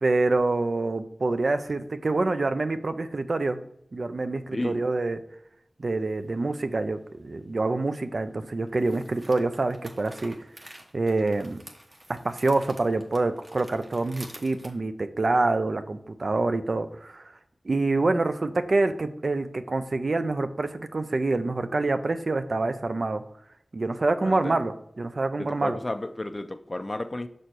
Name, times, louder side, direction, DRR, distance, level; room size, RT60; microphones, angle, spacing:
voice 1, 0.0-3.6 3.9-5.2 5.8-10.3 10.9-11.6 12.2-17.2 17.6-23.2 23.7-25.8, right 2 dB, 65° right, 0.5 m, -26 dB
voice 2, 4.5-4.8 24.2-24.6 25.4-27.3, left 1 dB, 35° left, 0.4 m, -32 dB
sound 1, 6.0-6.1 8.7-14.7, right 1 dB, 40° right, 1.1 m, -49 dB
6.5 x 4.3 x 4.6 m
wide cardioid pair, 70°, 0 cm